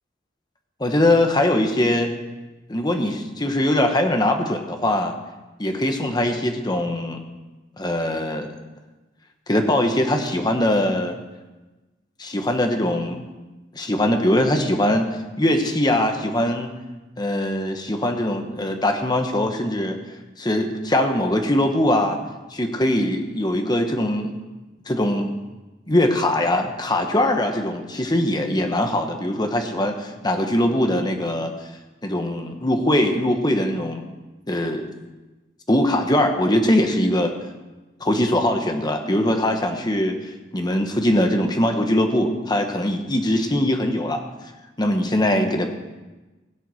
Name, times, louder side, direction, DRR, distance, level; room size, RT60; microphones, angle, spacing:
voice 1, 0.8-2.1 2.7-5.1 5.6-7.2 7.8-8.5 9.5-11.2 12.2-13.2 13.7-15.1 15.4-16.7 17.2-20.0 20.4-22.2 22.5-24.3 24.9-25.3 25.9-31.5 32.0-34.0 34.5-34.9 35.7-37.3 38.0-44.2 44.8-45.7, left 1 dB, 20° left, 5 dB, 1.3 m, -21 dB
16.5 x 8.0 x 6.3 m, 1.1 s
head